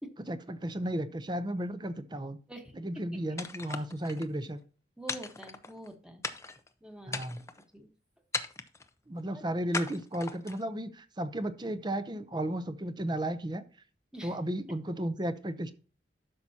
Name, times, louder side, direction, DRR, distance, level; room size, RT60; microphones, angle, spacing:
voice 1, 0.3-2.4 2.7-4.6 7.1-7.4 9.1-13.6 14.2-15.7, right 1 dB, 25° right, 11 dB, 0.7 m, -34 dB
voice 2, 2.5-3.2 5.0-6.2 6.8-7.4 7.7-7.9 9.3-9.4 14.1-14.4 14.7-14.8, right 1 dB, 5° right, 4 dB, 1.2 m, -46 dB
sound 1, 3.4-4.3 5.1-5.9 6.2-6.7 7.1-7.6 8.3-8.9 9.7-10.7, left 4 dB, 15° left, 0.6 m, -38 dB
12.5 x 6.0 x 2.8 m, 0.37 s
head